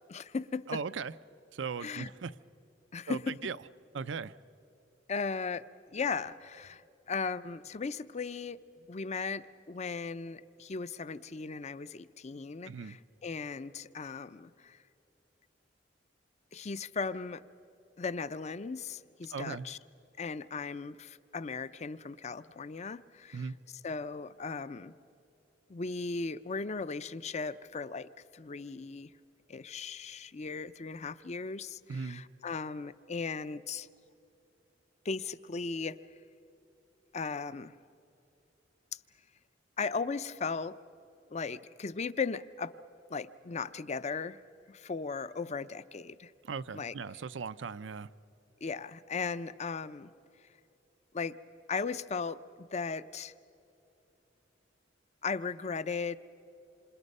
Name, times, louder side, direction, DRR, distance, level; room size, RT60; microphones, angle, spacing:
voice 1, 0.1-0.8 1.8-2.1 2.9-3.3 5.1-5.6 5.9-6.8 7.1-8.6 8.9-14.8 16.5-17.4 18.0-19.8 20.2-23.5 23.8-24.9 25.7-29.1 29.5-33.9 35.0-36.0 37.1-37.7 39.8-40.8 41.3-42.7 43.1-44.4 44.7-46.3 46.7-46.9 48.6-50.1 51.1-51.3 51.7-52.4 52.7-53.3 55.2-56.2, left 4 dB, 40° left, 0.5 m, -37 dB
voice 2, 0.7-1.1 1.5-2.3 3.1-3.6 3.9-4.3 12.7-13.0 19.3-19.7 23.3-23.6 31.9-32.2 46.4-48.1, right 5 dB, 80° right, 0.5 m, -38 dB
27.5 x 27.0 x 5.4 m
head